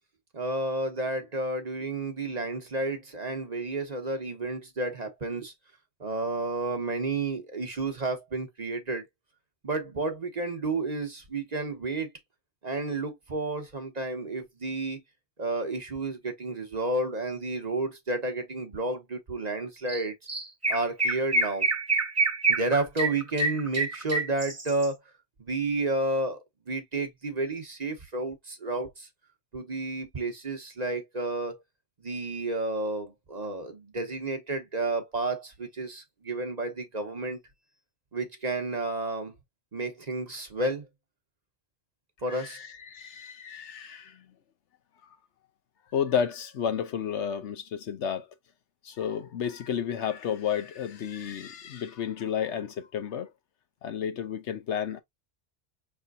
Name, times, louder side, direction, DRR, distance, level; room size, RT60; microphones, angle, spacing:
voice 1, 0.3-5.5 6.0-9.0 9.6-12.1 12.6-15.0 15.4-20.1 20.7-21.7 22.5-25.0 25.4-26.4 26.7-29.1 29.5-31.6 32.0-37.4 38.1-39.3 39.7-40.8 42.2-42.6, right 2 dB, 40° right, 1.0 m, -31 dB
Chirp tweet, 19.9-20.0 20.3-24.9, right 3 dB, 15° right, 0.7 m, -27 dB
voice 2, 42.3-44.1 45.9-48.3 48.8-53.3 53.8-55.0, left 8 dB, 80° left, 1.1 m, -31 dB
5.6 x 3.4 x 2.4 m
omnidirectional pair, 1.2 m